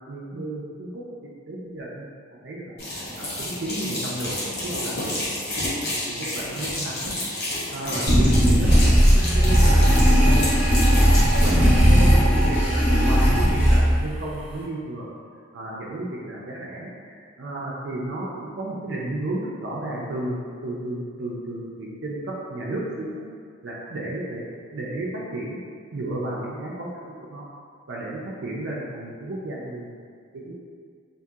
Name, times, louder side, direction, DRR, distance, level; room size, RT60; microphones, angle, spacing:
voice 1, 0.1-1.0 1.5-2.1 2.4-7.1 7.7-8.7 9.1-9.8 10.2-10.5 11.3-15.1 15.5-23.2 23.6-25.6 25.9-27.4 27.9-29.9 30.3-30.5, right 1 dB, 60° right, -5 dB, 0.4 m, -33 dB
sound 1, 2.8-11.6, left 1 dB, 50° left, 0.8 m, -30 dB
sound 2, 8.1-14.1, equal, 5° right, 0.8 m, -17 dB
2.7 x 2.6 x 2.3 m, 2.1 s
head